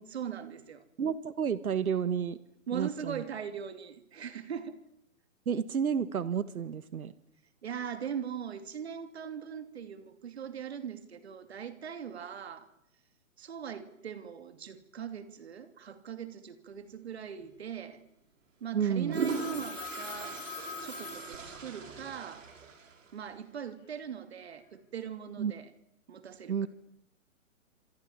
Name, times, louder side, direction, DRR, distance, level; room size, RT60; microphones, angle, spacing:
voice 1, 0.0-0.8 2.7-4.8 7.6-12.7 13.4-18.0 18.6-20.4 20.8-22.5 23.1-25.7 26.1-26.7, right 8 dB, 50° right, 2.9 m, -40 dB
voice 2, 1.0-2.4 2.7-3.2 5.4-7.1 18.7-19.2 25.4-25.5 26.5-26.7, right 7 dB, 90° right, 1.6 m, -31 dB
sound 1, 17.4-17.6 18.7-23.3, right 5 dB, 65° right, 5.7 m, -39 dB
Telephone, 19.1-22.0, left 6 dB, 20° left, 7.8 m, -43 dB
28.0 x 27.0 x 7.3 m
hypercardioid pair, 175°, 42 cm